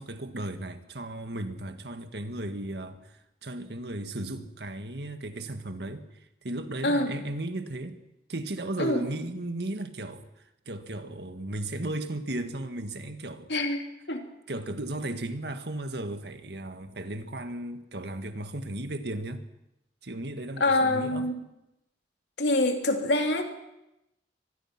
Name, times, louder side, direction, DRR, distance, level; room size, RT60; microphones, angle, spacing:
voice 1, 0.0-8.0 8.3-10.2 10.7-13.5 14.5-19.4 20.0-21.3, right 1 dB, 65° right, 8 dB, 1.8 m, -35 dB
voice 2, 6.8-7.2 8.8-9.0 13.5-13.8 14.1-14.2 20.6-21.3 22.4-23.4, left 2 dB, 75° left, 4 dB, 2.9 m, -25 dB
24.5 x 19.5 x 6.0 m, 0.89 s
head